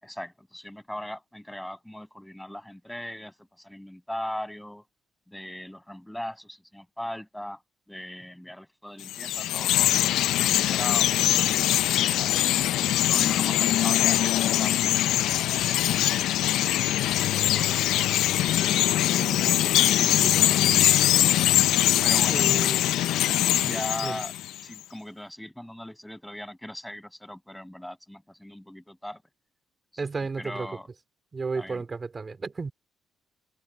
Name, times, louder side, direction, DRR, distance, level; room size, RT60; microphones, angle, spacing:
voice 1, 0.0-4.8 5.3-7.6 7.9-12.4 13.1-14.8 15.3-16.4 17.2-17.7 22.0-22.7 23.7-24.4 24.6-29.2 29.9-30.9 31.5-31.9, left 1 dB, 5° left, 6.9 m, -39 dB
Chirp tweet, 9.0-24.6, left 13 dB, 85° left, 0.4 m, -22 dB
voice 2, 19.2-19.7 20.2-20.6 22.3-22.8 23.6-24.2 30.0-30.7 31.3-32.7, right 4 dB, 30° right, 3.6 m, -34 dB
cardioid pair, 90°, 0 cm